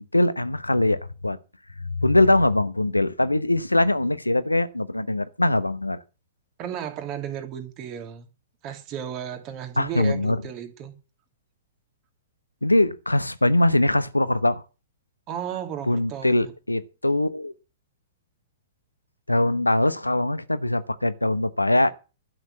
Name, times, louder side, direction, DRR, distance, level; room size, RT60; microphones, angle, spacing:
voice 1, 0.0-1.4 1.9-6.0 9.8-10.4 12.6-14.6 15.9-17.5 19.3-21.9, left 1 dB, 85° left, 0.9 m, -22 dB
voice 2, 6.6-8.3 8.6-10.9 15.3-16.5, right 9 dB, 35° right, 2.5 m, -34 dB
12.0 x 6.4 x 8.5 m
figure-of-eight pair, 110°, 0 cm